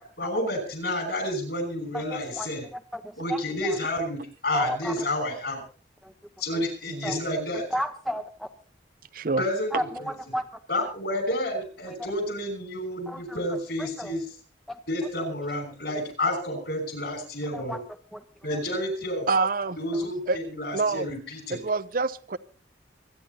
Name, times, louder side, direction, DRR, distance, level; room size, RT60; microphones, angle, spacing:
voice 1, 0.2-2.7 3.2-5.6 6.4-7.6 9.4-10.1 10.7-14.2 14.9-17.8 18.4-19.3 19.8-21.6, left 1 dB, 60° left, 5.9 m, -30 dB
voice 2, 1.9-2.5 2.9-3.8 4.5-5.0 6.0-6.1 6.5-6.6 7.0-7.2 7.7-8.5 9.7-10.4 13.1-13.4 13.8-14.2 14.7-14.8 17.5-17.8 18.1-18.2, equal, ahead, 0.7 m, -33 dB
voice 3, 6.9-7.2 9.1-9.4 19.3-19.8 20.3-20.4 20.7-21.1 21.5-22.4, right 3 dB, 50° right, 0.6 m, -26 dB
26.0 x 10.0 x 4.0 m
head